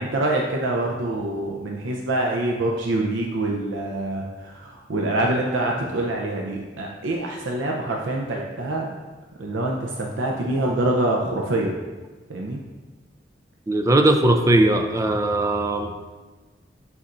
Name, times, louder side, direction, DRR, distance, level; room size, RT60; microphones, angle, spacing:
voice 1, 0.0-9.0 9.4-11.7 12.3-12.6, right 2 dB, 85° right, -1 dB, 0.6 m, -25 dB
voice 2, 13.7-15.9, right 1 dB, 15° right, 5 dB, 0.4 m, -19 dB
11.0 x 4.2 x 2.5 m, 1.3 s
head